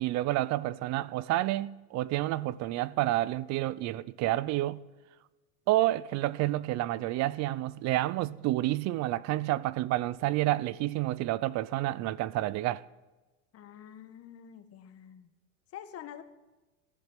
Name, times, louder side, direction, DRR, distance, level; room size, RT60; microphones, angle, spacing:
voice 1, 0.0-4.8 5.7-12.8, right 16 dB, 50° right, 0.6 m, -29 dB
voice 2, 13.5-15.3 15.7-16.2, left 10 dB, 40° left, 1.5 m, -47 dB
15.0 x 7.3 x 9.3 m
supercardioid pair, 105°, 36 cm